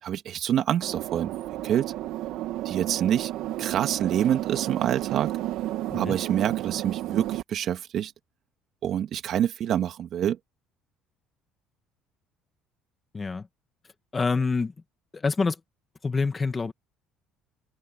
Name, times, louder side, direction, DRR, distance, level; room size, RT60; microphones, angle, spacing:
voice 1, 0.0-1.4 1.6-1.9 2.6-3.3 3.6-5.3 5.9-8.1 8.8-10.4, right 10 dB, 50° right, 2.7 m, -26 dB
sound 1, 0.8-7.4, right 14 dB, 75° right, 2.9 m, -31 dB
voice 2, 13.1-13.5 14.1-14.7 15.1-15.6 16.0-16.7, left 4 dB, 20° left, 1.8 m, -26 dB
cardioid pair, 130°, 0 cm